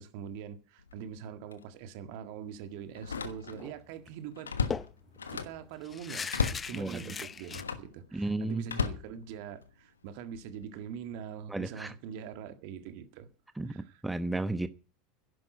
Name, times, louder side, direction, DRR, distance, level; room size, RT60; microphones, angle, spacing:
voice 1, 0.0-4.5 5.0-13.3 13.6-14.0, right 8 dB, 55° right, 1.8 m, -43 dB
Slam, 0.8-1.1 1.5-1.6 2.9-3.8 4.1-5.7 6.3-6.7 7.5-7.9 8.6-9.7 10.3-10.6, left 5 dB, 80° left, 1.2 m, -34 dB
sound 1, 3.6-3.8 4.1-4.2 4.7-7.6, left 6 dB, 25° left, 0.6 m, -39 dB
voice 2, 8.1-8.6 11.5-11.9 13.6-14.7, right 2 dB, 5° right, 1.0 m, -33 dB
11.0 x 10.5 x 9.1 m
figure-of-eight pair, 80°, 0 cm